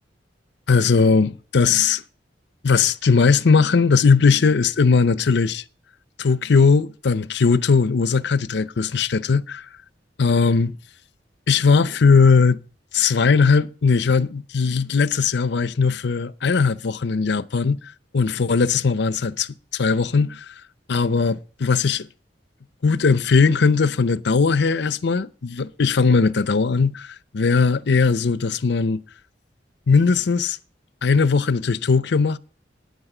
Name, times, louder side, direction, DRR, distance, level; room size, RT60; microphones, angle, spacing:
voice 1, 0.7-2.0 2.6-5.6 6.2-9.7 10.2-10.7 11.5-12.6 12.9-17.8 18.1-20.5 20.9-22.1 22.8-29.0 29.9-30.6 31.0-32.4, left 4 dB, 70° left, 0.6 m, -19 dB
12.5 x 9.5 x 5.0 m
head